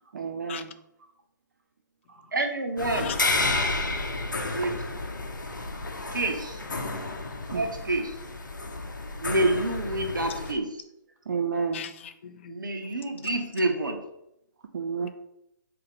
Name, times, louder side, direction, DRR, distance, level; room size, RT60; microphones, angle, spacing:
voice 1, 0.1-0.7 2.1-2.3 7.5-7.7 11.3-11.9 14.7-15.1, right 5 dB, 55° right, 0.4 m, -31 dB
voice 2, 2.3-3.1 4.4-4.7 6.1-6.6 7.5-8.2 9.2-10.7 12.5-14.0, right 2 dB, 75° right, 0.8 m, -28 dB
sound 1, 2.8-10.5, left 2 dB, 75° left, 0.7 m, -31 dB
voice 3, 2.9-3.4 10.3-10.4 11.7-12.6, left 8 dB, 40° left, 0.4 m, -38 dB
4.7 x 3.0 x 3.5 m
figure-of-eight pair, 130°, 11 cm